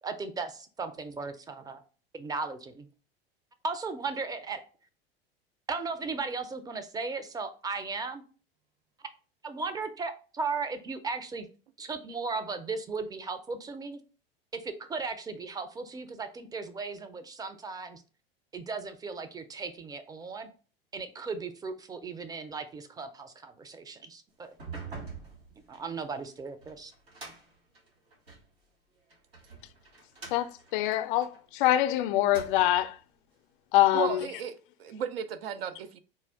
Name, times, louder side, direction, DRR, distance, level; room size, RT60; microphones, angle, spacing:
voice 1, 0.0-1.8 2.1-2.9 3.6-4.6 5.7-8.2 9.4-11.5 11.8-14.0 14.5-18.0 18.5-20.5 20.9-24.5 25.7-26.9, right 4 dB, 15° right, 0.5 m, -36 dB
sound 1, 24.4-28.5 29.1-31.8 32.2-32.9, right 4 dB, 90° right, 1.5 m, -46 dB
voice 2, 30.3-33.0 33.7-34.2, left 14 dB, 60° left, 0.4 m, -25 dB
voice 3, 33.9-36.0, right 8 dB, 75° right, 0.5 m, -35 dB
4.3 x 2.3 x 3.4 m
hypercardioid pair, 85°, 30 cm